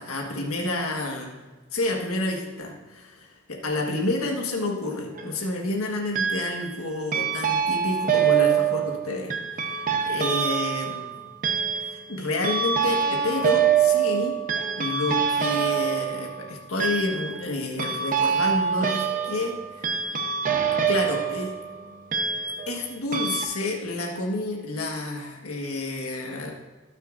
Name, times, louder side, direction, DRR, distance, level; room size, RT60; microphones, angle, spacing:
voice 1, 0.0-1.3 1.7-11.1 11.8-14.4 14.8-20.1 20.9-21.5 22.7-26.5, left 2 dB, 90° left, 1 dB, 1.5 m, -29 dB
sound 1, 4.8-5.4 6.1-6.8 7.1-22.8 23.1-23.4, right 7 dB, 40° right, 0.8 m, -25 dB
18.5 x 6.6 x 2.6 m, 1.3 s
head